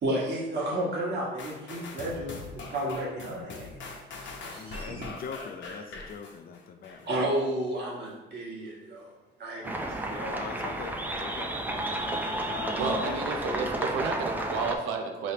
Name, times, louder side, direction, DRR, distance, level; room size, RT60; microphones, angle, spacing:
voice 1, 0.0-3.8 4.2-5.1 7.0-9.1 9.4-10.4 12.7-13.0, right 1 dB, 55° right, -4 dB, 1.5 m, -32 dB
sound 1, 1.4-7.2 7.7-7.9, left 3 dB, 70° left, 0.8 m, -42 dB
voice 2, 4.5-7.1 10.3-11.6 12.4-13.2, left 6 dB, 50° left, 7 dB, 0.4 m, -41 dB
sound 2, 9.6-14.7, right 1 dB, 10° right, 0.5 m, -32 dB
voice 3, 12.8-15.3, right 4 dB, 90° right, 3 dB, 0.5 m, -31 dB
4.8 x 3.1 x 2.8 m, 1.1 s
cardioid pair, 90°, 20 cm